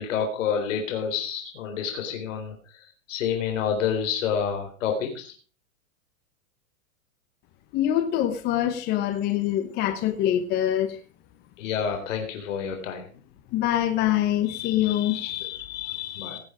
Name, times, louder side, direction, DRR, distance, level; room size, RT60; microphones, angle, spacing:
voice 1, 0.0-2.5 3.1-5.3 11.6-13.1 15.1-15.4 16.2-16.4, left 7 dB, 60° left, 3.9 m, -28 dB
voice 2, 7.7-11.0 13.5-16.4, left 12 dB, 25° left, 1.0 m, -25 dB
17.5 x 8.1 x 4.9 m
hypercardioid pair, 150°, 42 cm